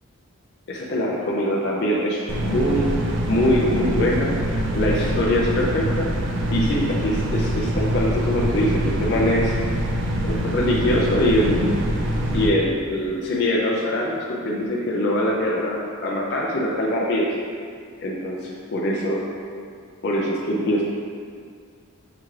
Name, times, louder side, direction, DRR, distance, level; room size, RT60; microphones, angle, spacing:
voice 1, 0.7-2.9 3.3-4.3 4.7-6.1 6.5-9.6 10.2-11.7 12.3-17.3 18.0-19.2 20.0-20.8, left 1 dB, 50° left, -4 dB, 0.4 m, -23 dB
sound 1, 2.3-12.5, equal, 55° right, 0.4 m, -24 dB
5.7 x 2.4 x 3.1 m, 2.1 s
head